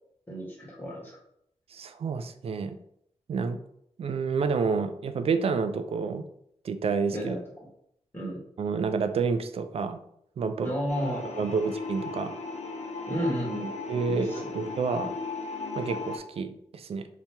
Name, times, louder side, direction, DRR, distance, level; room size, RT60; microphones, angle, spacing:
voice 1, 0.3-1.1 7.1-7.4 8.1-8.4 10.6-11.6 13.1-13.7 14.1-14.5, equal, 15° left, -6 dB, 1.5 m, -32 dB
voice 2, 1.7-2.8 3.3-3.6 4.0-6.2 6.6-7.4 8.6-10.0 10.4-10.7 11.4-12.3 13.9-15.1 15.8-17.1, right 5 dB, 55° right, 9 dB, 0.3 m, -29 dB
sound 1, 10.9-16.2, left 3 dB, 70° left, 0.6 m, -36 dB
2.8 x 2.8 x 3.4 m, 0.73 s
cardioid pair, 80°, 12 cm